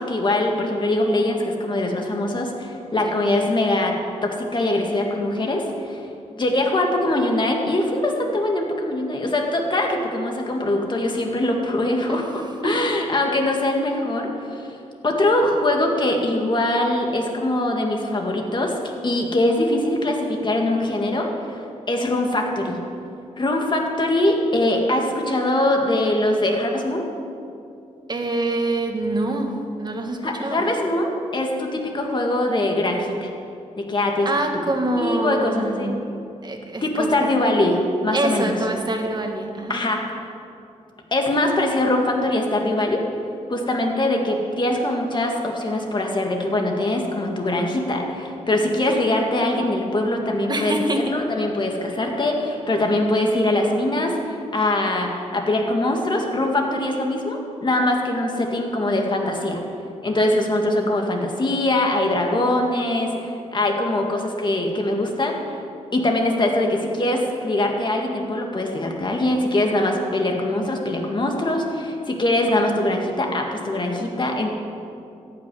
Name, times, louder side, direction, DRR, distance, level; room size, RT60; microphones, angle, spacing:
voice 1, 0.0-6.0 6.4-14.7 15.0-22.8 23.4-27.1 30.2-33.3 33.8-34.5 35.0-35.9 36.8-38.6 39.7-40.0 41.1-43.0 43.5-50.7 51.0-59.6 60.0-65.6 65.9-74.5, left 1 dB, 35° left, 1 dB, 2.1 m, -22 dB
voice 2, 28.1-30.7 34.3-36.1 36.4-37.3 38.1-39.8 50.5-51.1, right 2 dB, 35° right, 3 dB, 1.8 m, -25 dB
14.0 x 6.1 x 9.8 m, 2.6 s
cardioid pair, 80°, 13 cm